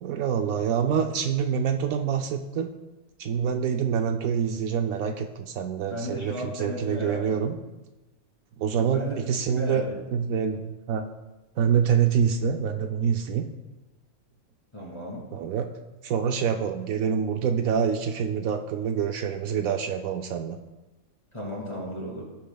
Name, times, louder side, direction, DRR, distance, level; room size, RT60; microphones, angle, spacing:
voice 1, 0.0-2.7 3.2-7.6 8.6-9.8 10.1-11.1 11.6-13.5 15.3-15.7 16.0-20.6, right 7 dB, 75° right, 6 dB, 1.0 m, -26 dB
voice 2, 5.9-7.4 8.9-9.2 9.5-10.0 14.7-15.2 21.3-22.2, equal, 20° left, -4 dB, 2.8 m, -34 dB
16.0 x 8.3 x 2.3 m, 1.1 s
omnidirectional pair, 1.5 m